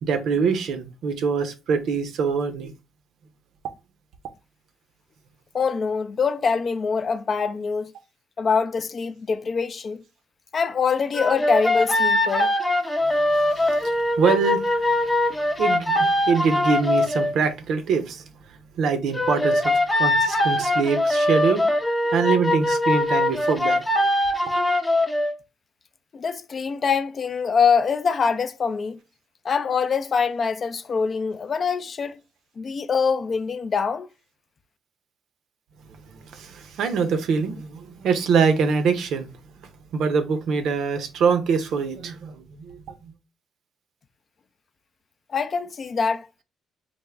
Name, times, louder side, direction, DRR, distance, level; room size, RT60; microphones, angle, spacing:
voice 1, 0.0-2.7 13.8-14.9 15.6-18.3 18.8-21.7 22.1-23.8 36.3-39.3 39.9-42.8, right 5 dB, 75° right, 0.5 m, -24 dB
voice 2, 5.5-7.9 8.4-10.0 10.5-12.5 26.1-29.0 29.4-32.2 32.6-34.1 45.3-46.3, left 5 dB, 45° left, 0.3 m, -24 dB
sound 1, 11.1-17.3 19.1-25.3, left 1 dB, 15° left, 0.6 m, -22 dB
3.4 x 2.1 x 3.3 m
cardioid pair, 80°, 0 cm